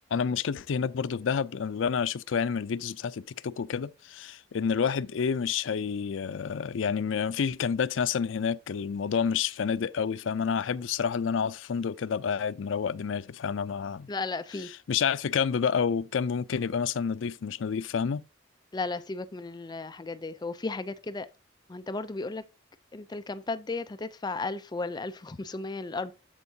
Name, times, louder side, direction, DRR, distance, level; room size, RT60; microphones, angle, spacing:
voice 1, 0.1-14.1 14.9-18.2, left 6 dB, 80° left, 0.4 m, -29 dB
voice 2, 14.1-14.7 18.7-21.3 21.7-22.4 22.9-26.1, left 3 dB, 20° left, 0.4 m, -34 dB
13.5 x 4.5 x 2.7 m
head